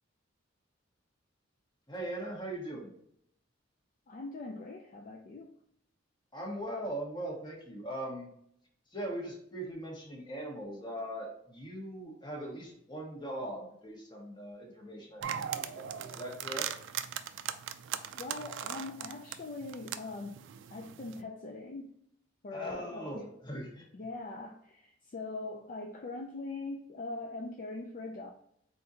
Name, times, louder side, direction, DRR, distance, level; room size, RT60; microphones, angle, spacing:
voice 1, 1.9-2.9 6.3-8.3 8.9-16.7 22.5-23.8, right 1 dB, 25° left, -1 dB, 1.3 m, -40 dB
voice 2, 4.1-5.5 18.1-20.4 20.7-22.0 22.4-23.3 23.9-28.3, left 2 dB, 45° left, 2 dB, 0.4 m, -42 dB
sound 1, 15.2-21.2, right 9 dB, 65° right, 0.3 m, -39 dB
4.2 x 3.8 x 2.7 m, 0.70 s
head